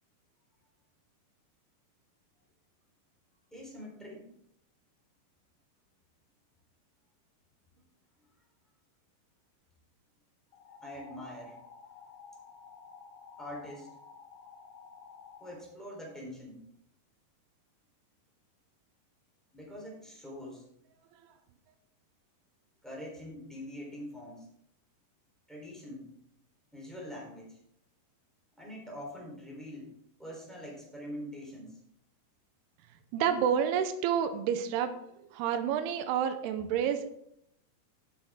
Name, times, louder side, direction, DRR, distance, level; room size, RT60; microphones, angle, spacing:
voice 1, 3.5-4.3 10.8-11.6 13.4-13.9 15.4-16.6 19.5-20.6 22.8-24.5 25.5-26.1 26.7-27.6 28.6-29.9 30.2-31.8, left 1 dB, ahead, -3 dB, 3.0 m, -44 dB
sound 1, 10.5-15.5, left 5 dB, 65° left, 4.0 m, -52 dB
voice 2, 33.1-35.0 35.3-37.1, right 8 dB, 85° right, 9 dB, 2.8 m, -29 dB
11.5 x 7.7 x 3.7 m, 0.74 s
omnidirectional pair, 4.7 m